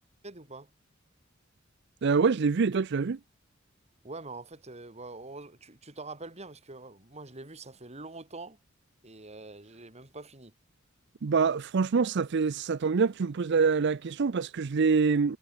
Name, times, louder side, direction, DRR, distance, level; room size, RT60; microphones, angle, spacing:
voice 1, 0.2-0.7 4.0-8.6 9.0-10.5, right 3 dB, 35° right, 3.0 m, -44 dB
voice 2, 2.0-3.2 11.2-15.4, right 5 dB, 60° right, 0.5 m, -25 dB
head